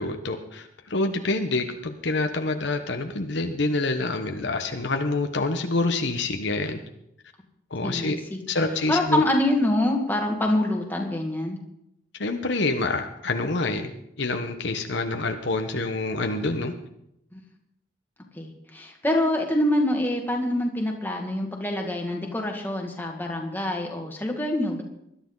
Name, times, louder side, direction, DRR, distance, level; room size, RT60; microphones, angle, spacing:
voice 1, 0.0-6.8 7.7-8.2 8.5-9.2 12.2-13.9 14.2-16.7, left 2 dB, 60° left, 5 dB, 1.1 m, -27 dB
voice 2, 7.8-8.4 8.9-11.6 17.3-17.4 18.4-24.8, left 1 dB, 10° left, 1 dB, 2.1 m, -25 dB
20.5 x 12.0 x 4.0 m, 0.77 s
head